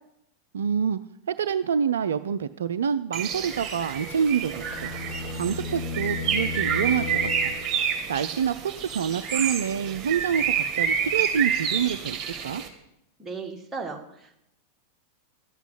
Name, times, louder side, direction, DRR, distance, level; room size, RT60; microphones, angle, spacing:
voice 1, 0.5-1.0 1.3-12.2 12.4-12.6, right 7 dB, 65° right, 13 dB, 0.4 m, -27 dB
Bird, 3.1-12.7, right 7 dB, 30° right, 2.1 m, -29 dB
sound 1, 4.1-8.0, left 3 dB, 60° left, 3.4 m, -35 dB
voice 2, 13.2-14.5, right 4 dB, 15° right, 1 dB, 2.0 m, -36 dB
12.0 x 8.1 x 8.4 m, 0.80 s
figure-of-eight pair, 90°, 0 cm